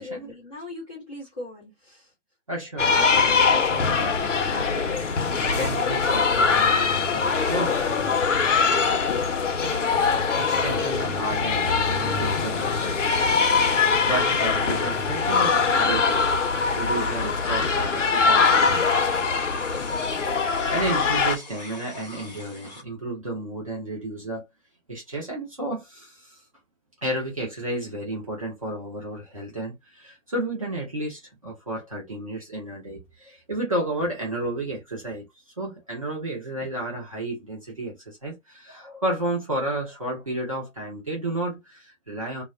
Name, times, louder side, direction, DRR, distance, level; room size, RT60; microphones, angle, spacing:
voice 1, 0.0-2.1, left 2 dB, 5° left, 0.8 m, -39 dB
voice 2, 2.5-7.8 9.6-9.9 10.4-13.5 13.7-16.3 16.8-18.6 20.4-24.5 24.9-26.4 27.0-35.2 35.6-42.4, right 1 dB, 30° right, 0.8 m, -32 dB
sound 1, 2.8-21.4, left 5 dB, 75° left, 0.7 m, -22 dB
sound 2, 13.4-22.8, left 2 dB, 35° left, 0.7 m, -44 dB
2.2 x 2.2 x 3.6 m
hypercardioid pair, 170°, 37 cm